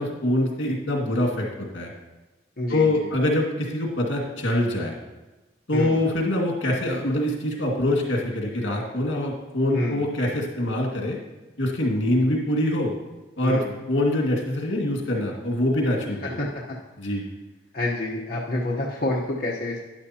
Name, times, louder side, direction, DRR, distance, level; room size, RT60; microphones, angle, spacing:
voice 1, 0.0-1.9 2.7-5.0 5.7-11.2 11.6-12.9 13.4-16.4 17.0-17.3, left 1 dB, 80° left, 0 dB, 2.1 m, -24 dB
voice 2, 2.6-3.1 5.7-6.0 9.7-10.0 13.4-13.7 16.2-16.8 17.7-19.9, left 1 dB, 55° left, -5 dB, 1.1 m, -28 dB
12.0 x 9.8 x 2.9 m, 1.1 s
head